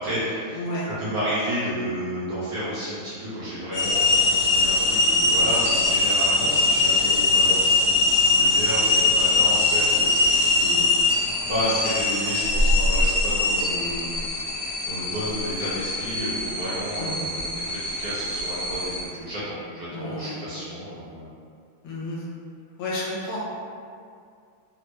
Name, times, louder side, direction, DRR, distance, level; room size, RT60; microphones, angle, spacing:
voice 1, 0.0-0.6 1.0-10.9 11.5-21.3, equal, 65° right, -11 dB, 0.9 m, -31 dB
voice 2, 0.5-0.9 6.4-6.6 17.0-17.2 19.9-20.4 21.8-22.2 22.8-23.4, left 1 dB, 85° left, -6 dB, 1.5 m, -32 dB
sound 1, 3.7-19.1, left 2 dB, 70° left, 1.0 m, -22 dB
3.5 x 2.1 x 3.0 m, 2.3 s
omnidirectional pair, 2.4 m